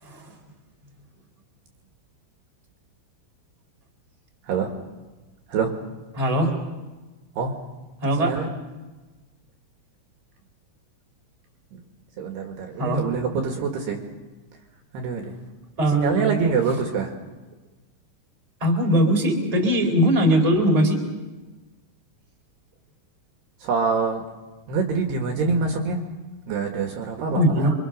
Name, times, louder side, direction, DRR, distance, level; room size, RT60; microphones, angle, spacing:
voice 1, 0.0-0.4 6.2-6.5 8.0-8.3 12.8-13.0 15.8-16.3 18.6-21.0 27.3-27.7, equal, 10° right, 1 dB, 3.5 m, -20 dB
voice 2, 8.2-8.5 11.7-11.8 12.2-14.0 14.9-15.4 15.9-17.1 23.6-24.2 24.7-26.0 26.5-27.7, right 5 dB, 65° right, 3 dB, 3.6 m, -25 dB
27.5 x 25.0 x 6.6 m, 1.2 s
omnidirectional pair, 5.7 m